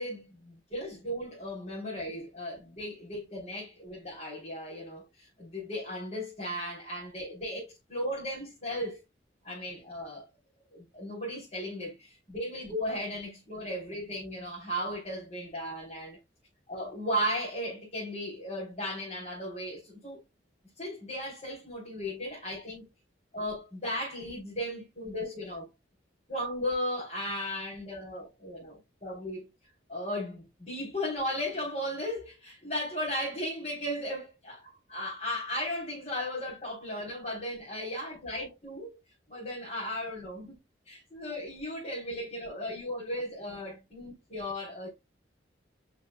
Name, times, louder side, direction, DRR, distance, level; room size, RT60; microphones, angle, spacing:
voice 1, 0.0-9.0 9.4-10.3 10.7-16.2 16.7-20.2 20.8-22.9 23.3-25.7 26.3-29.5 29.9-39.0 39.3-40.6 40.9-44.9, equal, 35° left, 3.9 m, -36 dB
8.3 x 5.7 x 2.3 m
head